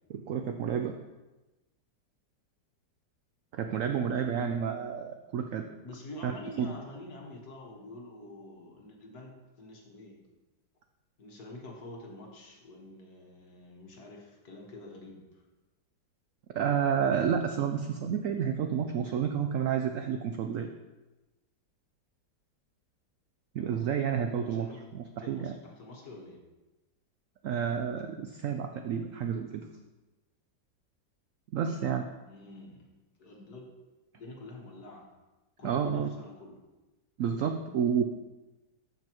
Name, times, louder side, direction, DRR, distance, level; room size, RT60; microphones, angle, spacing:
voice 1, 0.1-0.9 3.5-5.6 6.2-6.3 6.6-6.7 16.5-20.7 23.5-25.5 27.4-29.7 31.5-32.1 35.6-36.1 37.2-38.1, right 7 dB, 90° right, 6 dB, 0.7 m, -30 dB
voice 2, 5.8-10.3 11.2-15.4 24.4-24.8 25.2-26.4 32.3-32.9 33.2-33.7 34.1-35.1 35.6-36.6, left 2 dB, 60° left, -1 dB, 1.8 m, -47 dB
13.0 x 5.5 x 3.0 m, 1.1 s
omnidirectional pair, 1.9 m